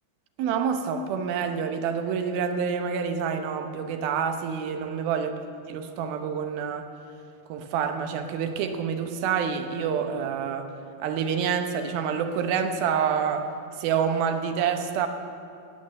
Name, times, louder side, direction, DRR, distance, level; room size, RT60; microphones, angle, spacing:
voice 1, 0.4-5.3 5.7-6.9 7.5-10.7 11.0-13.5 13.8-15.1, right 7 dB, 85° right, 7 dB, 2.8 m, -27 dB
17.0 x 8.4 x 7.5 m, 2.5 s
omnidirectional pair, 4.2 m